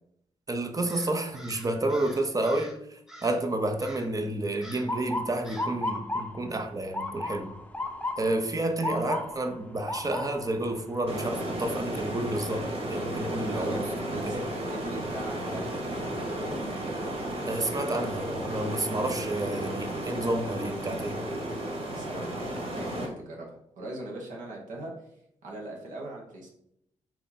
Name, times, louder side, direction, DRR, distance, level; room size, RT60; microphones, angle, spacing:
voice 1, 0.5-7.5 8.2-13.8 14.1-14.5 17.5-21.2, right 1 dB, 30° right, 6 dB, 0.7 m, -30 dB
Crow, 0.9-2.8 3.1-3.5 3.8-4.2 4.6-5.0 5.4-5.8, equal, 5° right, 1.0 m, -47 dB
Motor vehicle (road) / Siren, 4.9-16.8 17.2-17.7 18.5-18.8 20.6-20.9 21.4-21.5 21.9-22.6, left 1 dB, 10° left, 0.6 m, -37 dB
sound 1, 11.1-23.1, right 1 dB, 50° right, 1.6 m, -33 dB
voice 2, 13.5-16.6 21.8-24.9 25.4-26.5, right 2 dB, 90° right, -2 dB, 1.4 m, -40 dB
4.3 x 2.9 x 4.0 m, 0.74 s
cardioid pair, 70°, 13 cm